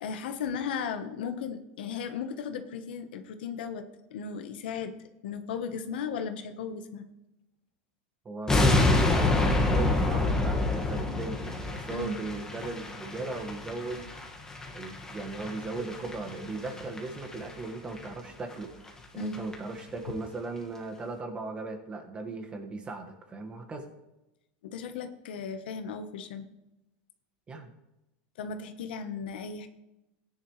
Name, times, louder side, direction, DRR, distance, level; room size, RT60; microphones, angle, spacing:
voice 1, 0.0-3.8 4.1-4.9 5.2-7.0 11.9-12.2 19.1-19.4 24.6-26.5 28.4-29.7, left 6 dB, 85° left, 8 dB, 1.1 m, -36 dB
voice 2, 8.2-14.1 14.7-18.7 19.1-23.9 27.5-27.7, right 3 dB, 20° right, 4 dB, 1.6 m, -37 dB
sound 1, 8.5-17.6 17.9-18.1 18.5-18.6 18.9-19.0 19.2-19.5 19.8-19.9, left 2 dB, 10° left, 1.8 m, -28 dB
15.5 x 10.0 x 3.2 m, 0.94 s
supercardioid pair, 135°, 5 cm